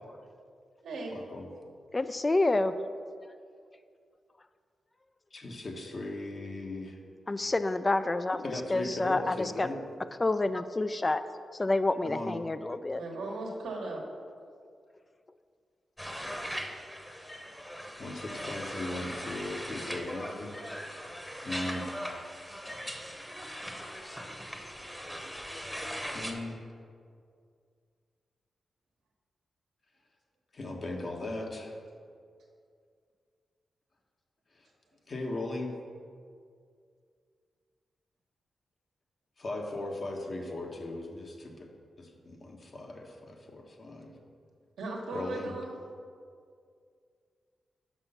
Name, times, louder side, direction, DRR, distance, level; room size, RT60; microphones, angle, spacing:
voice 1, 1.1-1.5 5.3-7.0 8.4-9.8 12.0-12.4 18.0-20.5 21.4-21.9 26.0-26.7 30.5-31.7 35.1-35.7 39.4-41.7 42.0-44.1 45.1-45.5, left 2 dB, 55° left, 1 dB, 1.1 m, -38 dB
voice 2, 1.9-2.7 7.3-8.4 8.7-9.7 10.2-11.2 11.5-13.0, left 2 dB, 30° left, 11 dB, 0.3 m, -28 dB
voice 3, 13.0-14.0 44.8-45.7, right 2 dB, 90° right, -1 dB, 1.2 m, -37 dB
sound 1, 16.0-26.3, equal, 5° left, 0.9 m, -40 dB
6.1 x 5.5 x 5.6 m, 2.2 s
cardioid pair, 60°, 0 cm